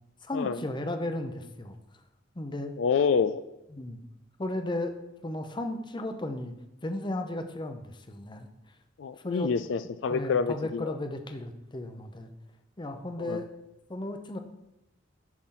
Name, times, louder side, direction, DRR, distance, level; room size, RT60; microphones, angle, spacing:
voice 1, 0.2-1.8 2.4-2.7 3.7-4.0 4.4-4.9 5.2-6.5 6.8-8.5 9.2-9.5 10.1-12.3 12.8-13.5 13.9-14.4, left 1 dB, 25° left, 7 dB, 0.7 m, -34 dB
voice 2, 2.8-3.4 9.0-10.9 13.2-13.4, left 5 dB, 70° left, 11 dB, 0.4 m, -27 dB
10.5 x 5.7 x 3.9 m, 0.93 s
head